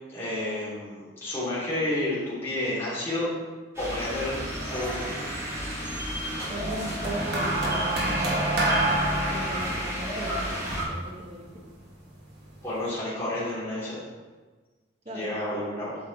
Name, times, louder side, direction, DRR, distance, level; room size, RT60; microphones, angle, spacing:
voice 1, 0.1-3.3 3.8-5.2 12.6-14.0 15.1-16.0, left 1 dB, 15° left, -10 dB, 2.5 m, -30 dB
sound 1, 3.7-10.8, equal, 15° right, 2.5 m, -32 dB
voice 2, 6.5-7.8 8.3-8.9 9.3-11.4 15.0-15.3, right 1 dB, 35° right, 0 dB, 1.1 m, -38 dB
sound 2, 7.0-11.5 12.4-12.6, right 1 dB, 60° right, 1.9 m, -27 dB
8.0 x 5.5 x 4.0 m, 1.3 s
head